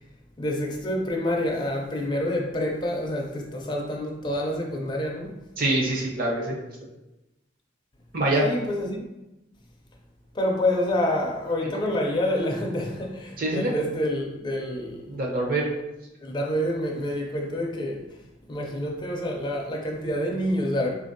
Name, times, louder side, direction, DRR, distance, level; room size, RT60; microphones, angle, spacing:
voice 1, 0.4-5.3 8.4-9.1 10.3-15.1 16.2-18.0 18.5-20.9, left 1 dB, 20° left, 0 dB, 0.4 m, -27 dB
voice 2, 5.6-6.5 8.1-8.5 11.6-11.7 13.4-13.7 15.1-15.7, right 1 dB, 45° right, -2 dB, 0.7 m, -24 dB
3.9 x 2.5 x 2.6 m, 0.98 s
head